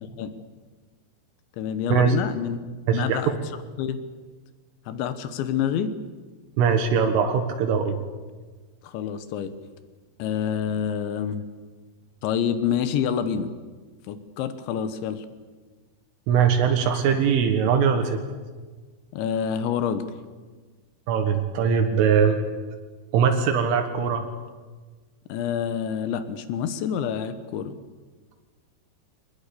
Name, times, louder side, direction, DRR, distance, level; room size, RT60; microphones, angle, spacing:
voice 1, 0.0-0.3 1.6-2.6 2.9-3.4 3.8-4.0 4.9-6.0 8.8-9.5 10.2-11.4 12.2-13.5 14.1-15.3 19.1-20.0 25.3-27.7, left 8 dB, 70° left, 11 dB, 3.4 m, -27 dB
voice 2, 2.9-3.2 6.6-8.0 16.3-18.2 21.1-22.4 23.1-24.3, right 7 dB, 80° right, 4 dB, 3.9 m, -21 dB
23.5 x 20.0 x 8.4 m, 1.4 s
omnidirectional pair, 5.7 m